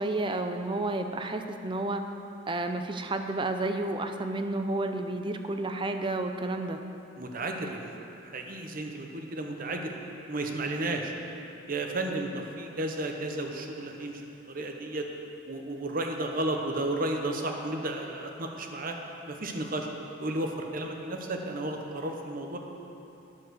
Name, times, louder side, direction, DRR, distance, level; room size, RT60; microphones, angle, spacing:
voice 1, 0.0-2.1 2.5-6.8, right 2 dB, 25° right, 6 dB, 0.5 m, -31 dB
voice 2, 7.2-7.8 8.2-9.9 10.3-11.1 11.7-14.2 14.5-15.1 15.5-19.0 19.3-19.9 20.2-22.6, right 2 dB, 45° right, 3 dB, 0.9 m, -33 dB
10.5 x 7.3 x 6.3 m, 2.8 s
head